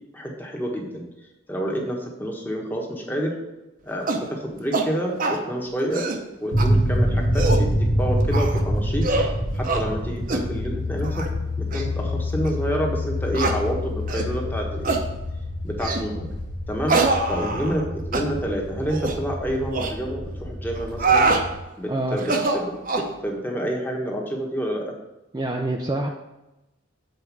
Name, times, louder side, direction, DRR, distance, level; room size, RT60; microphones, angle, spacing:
voice 1, 0.1-1.1 1.5-3.3 3.8-6.1 6.4-9.1 9.5-11.3 11.6-15.0 15.6-16.3 16.7-17.0 17.3-17.8 18.1-21.3 21.8-24.9, equal, 10° left, 0 dB, 1.3 m, -28 dB
sound 1, 4.1-4.3 4.7-4.9 5.2-5.4 5.8-6.2 6.6-6.7 7.2-7.7 8.3-8.6 9.0-9.3 9.6-9.8 10.3-10.5 11.0-11.3 11.7-11.8 12.4-12.5 13.3-13.6 14.1-14.3 14.8-15.0 15.8-16.1 16.9-17.8 18.1-18.3 18.9-19.2 19.7-19.9 20.7-21.4 22.2-23.1, right 3 dB, 45° right, 0.8 m, -24 dB
sound 2, 6.5-21.5, equal, 75° left, 1.7 m, -26 dB
voice 2, 21.9-22.2 25.3-26.1, right 1 dB, 20° right, 0 dB, 0.5 m, -26 dB
7.8 x 4.6 x 6.1 m, 0.98 s
head